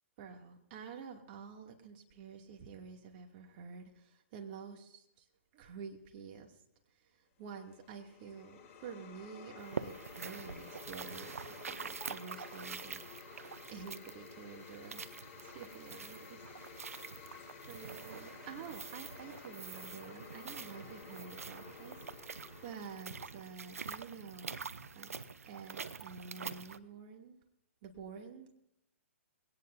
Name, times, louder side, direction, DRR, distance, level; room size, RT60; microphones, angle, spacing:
voice 1, 0.2-5.0 5.5-6.5 7.4-11.3 11.7-13.0 13.7-15.0 15.4-16.4 16.8-17.2 17.7-22.0 22.2-24.6 24.9-25.1 25.5-27.4 27.8-28.5, right 6 dB, 45° right, 2 dB, 2.6 m, -49 dB
sound 1, 7.5-24.0, left 7 dB, 30° left, 2.6 m, -53 dB
sound 2, 9.6-26.8, right 5 dB, 85° right, 0.8 m, -46 dB
21.0 x 18.0 x 2.7 m, 0.80 s
hypercardioid pair, 130°, 8 cm